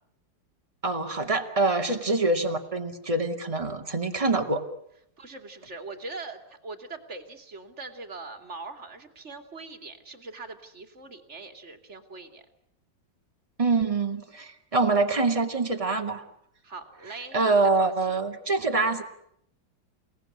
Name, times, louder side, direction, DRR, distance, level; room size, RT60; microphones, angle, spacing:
voice 1, 0.8-4.6 13.6-16.2 17.3-19.0, right 3 dB, 20° right, 4 dB, 2.4 m, -25 dB
voice 2, 5.2-12.4 16.6-18.2, right 3 dB, 35° right, 7 dB, 2.8 m, -42 dB
29.5 x 18.5 x 9.9 m, 0.75 s
omnidirectional pair, 2.0 m